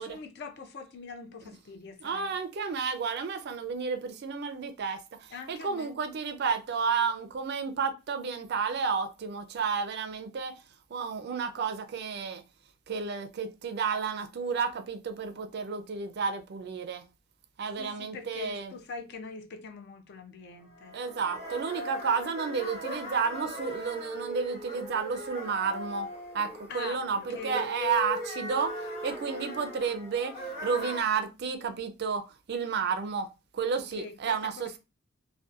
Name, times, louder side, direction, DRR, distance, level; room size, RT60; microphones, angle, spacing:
voice 1, 0.0-2.3 5.3-6.0 17.8-20.9 26.7-27.7 33.7-34.8, left 4 dB, 55° left, 0.4 m, -43 dB
voice 2, 2.0-10.6 10.9-12.4 12.9-17.0 17.6-18.7 20.9-26.1 26.3-33.3 33.5-34.8, right 5 dB, 55° right, 0.4 m, -31 dB
sound 1, 20.7-31.0, left 1 dB, 35° left, 1.0 m, -39 dB
2.7 x 2.2 x 2.4 m
head